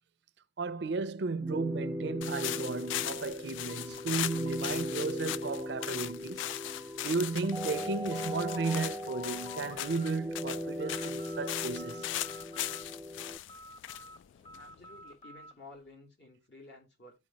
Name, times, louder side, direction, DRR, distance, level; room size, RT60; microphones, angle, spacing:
voice 1, 0.6-6.5 7.0-12.1, right 4 dB, 70° right, 0.5 m, -34 dB
sound 1, 1.4-13.4, left 1 dB, 5° right, 0.4 m, -39 dB
sound 2, 2.2-15.0, left 13 dB, 90° left, 0.3 m, -39 dB
sound 3, 3.7-6.1 6.4-7.5 7.8-8.8 9.1-10.1 10.5-11.5 11.8-13.0 13.5-15.6, left 2 dB, 35° left, 1.3 m, -51 dB
voice 2, 14.6-17.2, left 2 dB, 70° left, 2.8 m, -53 dB
12.5 x 4.6 x 2.9 m
head